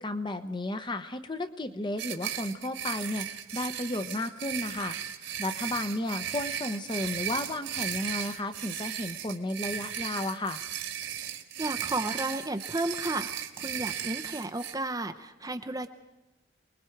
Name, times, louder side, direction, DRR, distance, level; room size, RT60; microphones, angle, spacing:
voice 1, 0.0-10.6, left 1 dB, 20° left, 8 dB, 0.8 m, -33 dB
sound 1, 2.0-14.7, right 9 dB, 60° right, 1.8 m, -36 dB
voice 2, 11.6-15.9, right 2 dB, 15° right, 8 dB, 0.7 m, -33 dB
28.5 x 20.5 x 4.6 m, 1.1 s
head